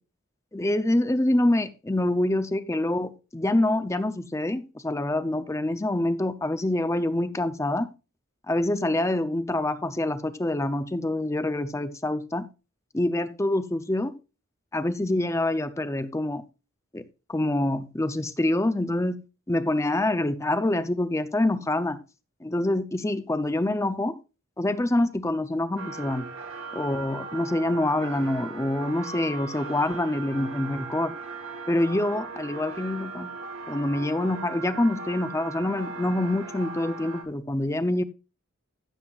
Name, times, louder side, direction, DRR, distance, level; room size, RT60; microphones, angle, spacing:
voice 1, 0.5-7.9 8.5-12.5 12.9-14.1 14.7-16.4 16.9-17.0 17.3-19.2 19.5-22.0 22.4-24.2 24.6-26.3 26.7-31.1 31.7-33.3 33.7-38.0, left 1 dB, 15° left, 0.5 m, -26 dB
sound 1, 25.8-37.2, right 4 dB, 80° right, 2.3 m, -38 dB
15.5 x 7.7 x 2.4 m
head